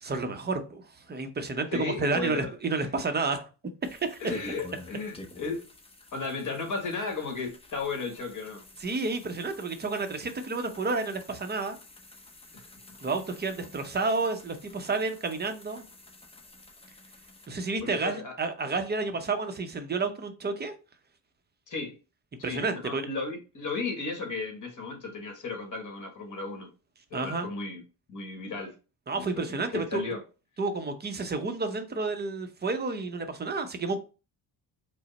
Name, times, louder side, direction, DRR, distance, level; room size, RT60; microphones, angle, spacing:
voice 1, 0.0-0.8 1.1-3.4 3.9-4.2 8.8-11.8 13.0-15.8 17.5-20.7 22.4-23.1 27.1-27.5 29.1-30.0 30.6-34.0, right 3 dB, 25° right, 0.6 m, -30 dB
voice 2, 1.7-2.5 2.8-2.9 4.2-5.7 6.1-8.6 12.5-12.7 17.8-18.3 21.7-22.0 22.4-26.7 27.1-27.8 28.1-28.7 29.1-30.2, left 4 dB, 45° left, 1.5 m, -35 dB
sound 1, 3.8-17.5, left 3 dB, 15° left, 0.6 m, -49 dB
4.9 x 2.1 x 4.1 m
cardioid pair, 115°, 42 cm